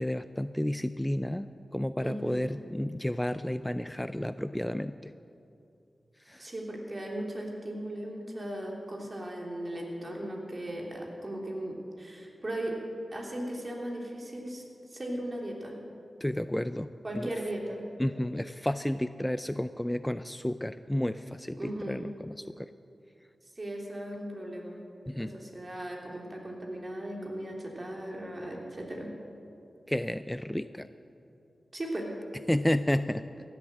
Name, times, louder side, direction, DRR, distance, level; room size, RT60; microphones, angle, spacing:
voice 1, 0.0-5.1 6.3-6.5 16.2-17.3 18.0-22.7 25.1-25.3 29.9-30.9 32.5-33.2, left 1 dB, 10° left, 12 dB, 0.4 m, -31 dB
voice 2, 2.0-2.5 6.4-12.8 13.1-14.6 14.9-15.8 17.0-17.8 21.6-22.1 23.6-24.8 25.2-29.1 31.7-32.1, right 1 dB, 40° right, -1 dB, 3.0 m, -37 dB
15.5 x 8.0 x 7.5 m, 2.7 s
cardioid pair, 45°, 0 cm